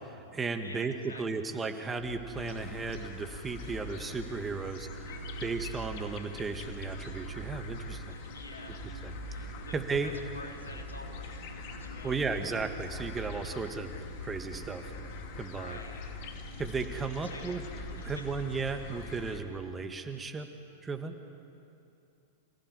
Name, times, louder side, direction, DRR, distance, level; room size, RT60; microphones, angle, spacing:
voice 1, 0.0-0.9 1.2-5.1 5.4-8.2 9.0-9.1 9.4-10.2 12.0-13.9 14.2-14.9 15.4-15.8 16.6-17.6 17.9-20.5 20.8-21.1, right 4 dB, 15° right, 6 dB, 2.0 m, -35 dB
voice 2, 0.6-1.5 5.0-5.5 8.1-9.0 9.3-9.7 10.0-12.2 15.5-16.0 17.2-17.5 18.0-18.3, left 3 dB, 85° left, 2 dB, 3.6 m, -49 dB
sound 1, 2.0-18.6, right 7 dB, 80° right, 1.1 m, -47 dB
sound 2, 2.3-19.4, left 5 dB, 50° left, 2.6 m, -44 dB
28.0 x 17.0 x 9.9 m, 2.7 s
figure-of-eight pair, 95°, 0 cm